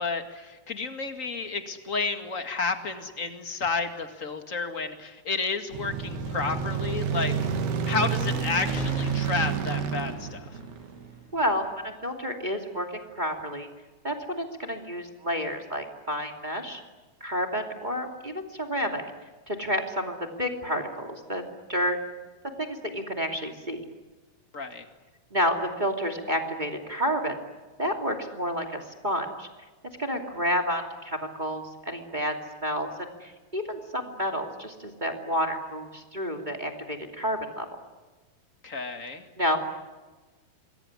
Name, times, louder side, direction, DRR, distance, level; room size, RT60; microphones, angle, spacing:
voice 1, 0.0-10.5 24.5-24.9 38.6-39.3, left 4 dB, 30° left, 6 dB, 1.6 m, -31 dB
sound 1, 5.7-11.2, right 6 dB, 90° right, 4.1 m, -29 dB
sound 2, 8.7-12.2, left 6 dB, 55° left, 2.8 m, -45 dB
voice 2, 11.3-12.9 13.1-13.7 14.0-16.8 17.2-19.0 19.5-21.4 21.7-22.0 22.6-23.8 25.3-27.3 27.8-29.5 30.0-32.3 32.6-32.9 33.2-37.7 39.4-39.6, equal, 15° right, 3 dB, 2.0 m, -30 dB
27.5 x 21.5 x 9.8 m, 1.2 s
omnidirectional pair, 4.4 m